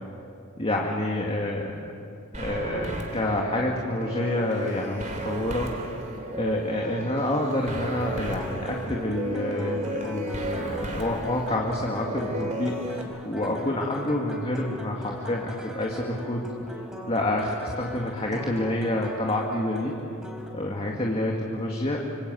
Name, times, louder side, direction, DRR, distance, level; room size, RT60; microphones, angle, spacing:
voice 1, 0.6-1.9 2.3-6.0 6.3-16.4 17.1-20.0 20.5-22.0, left 1 dB, 25° left, -1 dB, 2.2 m, -28 dB
sound 1, 2.3-13.0, right 1 dB, 35° right, 3.3 m, -34 dB
sound 2, 8.2-20.5, equal, 5° right, 3.9 m, -40 dB
26.5 x 24.5 x 7.8 m, 2.6 s
head